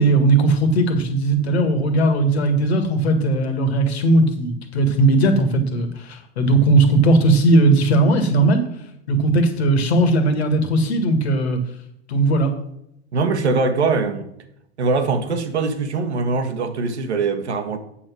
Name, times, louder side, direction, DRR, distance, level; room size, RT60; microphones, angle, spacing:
voice 1, 0.0-8.6 9.1-11.6 12.1-12.5, right 2 dB, 70° left, 7 dB, 1.8 m, -17 dB
voice 2, 13.1-14.2 14.8-17.8, right 4 dB, 75° right, 8 dB, 1.4 m, -22 dB
8.6 x 6.4 x 6.1 m, 0.76 s
figure-of-eight pair, 85°, 33 cm